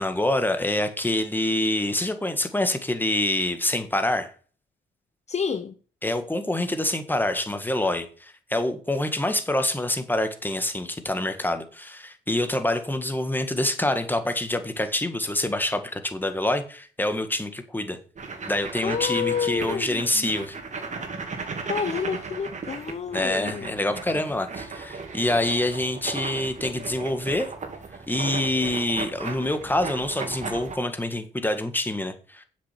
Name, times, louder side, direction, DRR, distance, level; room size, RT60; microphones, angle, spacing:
voice 1, 0.0-4.3 6.0-18.0 18.5-20.6 23.1-27.5 28.1-32.4, left 1 dB, 10° left, 1.7 m, -26 dB
voice 2, 5.3-5.7 18.8-20.3 21.7-23.8, left 6 dB, 35° left, 0.7 m, -29 dB
sound 1, 18.2-30.8, right 4 dB, 35° right, 2.6 m, -36 dB
7.7 x 6.6 x 7.6 m
cardioid pair, 90°, 20 cm